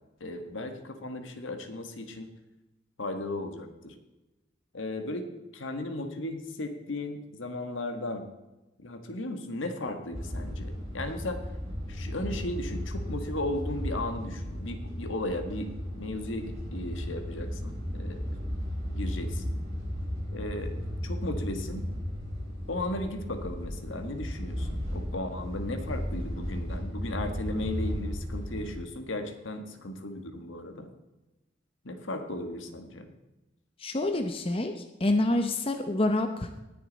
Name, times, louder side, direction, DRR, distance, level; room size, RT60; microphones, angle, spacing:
voice 1, 0.2-2.3 3.0-3.9 4.7-5.2 5.5-8.2 8.8-11.4 11.9-15.7 15.9-18.3 18.9-19.6 20.3-21.9 22.7-30.9 31.8-33.1, left 1 dB, 80° left, 6 dB, 1.6 m, -36 dB
sound 1, 10.1-28.7, equal, 35° right, 4.1 m, -35 dB
voice 2, 33.8-34.7 35.0-36.5, left 2 dB, 30° left, 6 dB, 0.7 m, -27 dB
19.0 x 6.8 x 4.1 m, 1.0 s
head